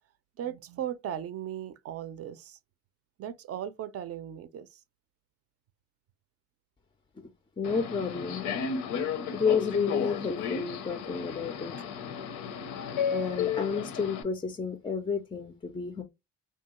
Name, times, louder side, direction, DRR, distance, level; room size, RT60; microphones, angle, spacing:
voice 1, 0.4-2.6 3.2-4.8, right 10 dB, 50° right, 0.4 m, -37 dB
Subway metro underground, 7.6-14.2, left 7 dB, 90° left, 0.6 m, -33 dB
voice 2, 7.6-8.5 9.3-11.7 13.1-16.0, left 5 dB, 15° left, 0.3 m, -31 dB
2.7 x 2.2 x 2.8 m
cardioid pair, 90°, 30 cm